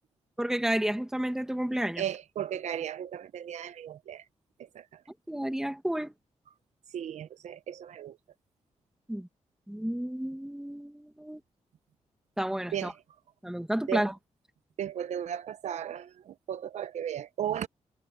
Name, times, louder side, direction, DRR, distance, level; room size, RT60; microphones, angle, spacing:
voice 1, 0.4-2.0 5.3-6.1 9.1-9.3 9.7-11.4 12.4-12.9 13.4-14.1, right 1 dB, 5° right, 1.7 m, -31 dB
voice 2, 2.0-4.3 4.6-5.0 6.9-8.2 12.7-13.0 13.9-14.1 14.8-17.7, right 10 dB, 80° right, 0.7 m, -35 dB
wide cardioid pair, 140°, 12 cm